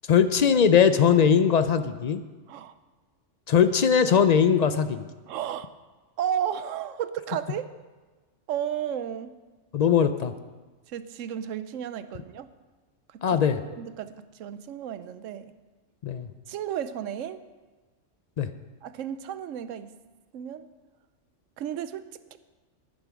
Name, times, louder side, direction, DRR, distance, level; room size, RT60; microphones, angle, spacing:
voice 1, 0.1-2.2 3.5-5.0 9.7-10.3 13.2-13.6 16.0-16.3 18.4-18.5, left 7 dB, 65° left, 11 dB, 0.4 m, -20 dB
voice 2, 5.3-5.7 6.2-7.7 8.5-9.3 10.9-12.5 13.3-13.4 13.8-14.1 14.4-15.5 16.5-17.4 18.8-19.9 20.3-20.7 21.6-22.4, right 9 dB, 90° right, 12 dB, 1.0 m, -33 dB
10.5 x 9.0 x 6.2 m, 1.3 s
omnidirectional pair, 1.3 m